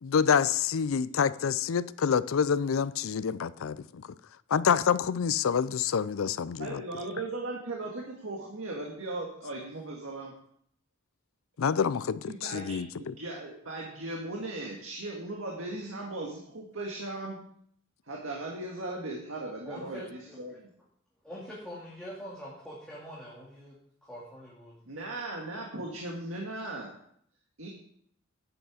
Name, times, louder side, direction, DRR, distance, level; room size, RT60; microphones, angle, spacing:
voice 1, 0.0-4.1 4.5-6.8 11.6-13.1, left 7 dB, 80° left, 0.4 m, -27 dB
voice 2, 6.6-10.3 12.2-17.4 18.0-20.7 24.9-26.9 27.6-27.7, right 2 dB, 80° right, 1.8 m, -38 dB
voice 3, 19.7-20.4 21.2-24.7, equal, 5° left, 2.4 m, -44 dB
11.0 x 7.9 x 5.0 m
head